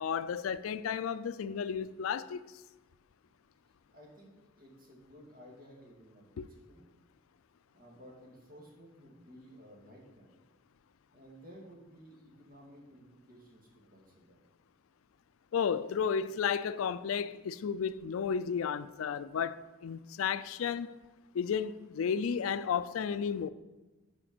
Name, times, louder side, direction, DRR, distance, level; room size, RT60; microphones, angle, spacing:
voice 1, 0.0-2.4 6.4-6.5 15.5-20.9 21.3-23.5, left 7 dB, 80° left, 0.4 m, -33 dB
voice 2, 3.9-6.9 7.7-10.3 11.1-14.4, equal, 40° right, 2.2 m, -55 dB
8.7 x 5.0 x 6.1 m
head